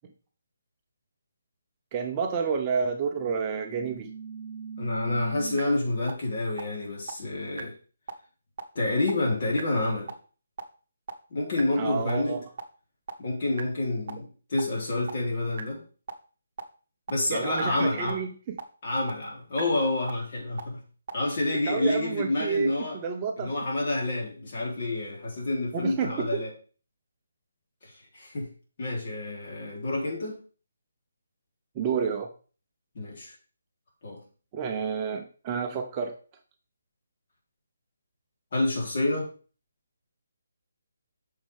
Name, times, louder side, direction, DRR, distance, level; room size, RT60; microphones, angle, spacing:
voice 1, 1.9-4.1 11.8-12.4 17.3-18.6 21.7-23.5 25.7-26.4 31.7-32.3 34.5-36.2, right 6 dB, 20° right, 3 dB, 0.7 m, -30 dB
sound 1, 3.2-5.6 6.1-6.2 6.6-6.7 7.1-7.2 7.6-7.7 8.1-8.2 8.6-8.7 9.1-9.2 9.6-9.7 10.1-10.2 10.6-10.7 11.1-11.2 11.6-11.7 12.1-12.2 12.6-12.7 13.1-13.2 13.6-13.7 14.1-14.2 14.6-14.7 15.1-15.2 15.6-15.7 16.1-16.2 16.6-16.7 17.1-17.2 17.6-17.7 18.1-18.2 18.6-18.7 19.1-19.2 19.6-19.7 20.1-20.2 20.6-20.7 21.1-21.2, right 6 dB, 40° right, 1.2 m, -37 dB
voice 2, 4.8-7.7 8.8-10.1 11.3-12.4 13.2-15.8 17.1-18.2 18.8-20.8 21.1-23.0 23.4-26.5 27.8-28.5 28.8-30.4 33.0-33.3 34.0-34.2 38.5-39.3, left 2 dB, 45° left, -3 dB, 3.5 m, -28 dB
8.7 x 6.3 x 3.5 m, 0.38 s
hypercardioid pair, 170°, 0 cm